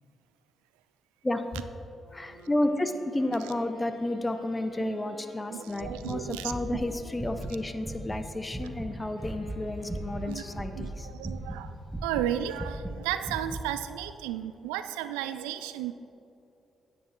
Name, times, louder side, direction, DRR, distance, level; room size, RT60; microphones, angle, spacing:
voice 1, 1.2-1.6 2.1-11.1, left 1 dB, 20° left, 8 dB, 0.8 m, -31 dB
Wind instrument woodwind instrument, 1.9-8.1 8.6-11.2, left 1 dB, 85° left, 1.2 m, -52 dB
voice 2, 5.5-6.8 10.2-10.4 10.7-11.8 12.0-15.9, right 11 dB, 85° right, 11 dB, 0.3 m, -34 dB
sound 1, 5.8-8.2 8.5-8.9 9.2-10.3 10.5-11.6 11.9-13.7, right 1 dB, 15° right, 1.2 m, -37 dB
9.8 x 9.3 x 3.7 m, 2.8 s
hypercardioid pair, 40°, 0 cm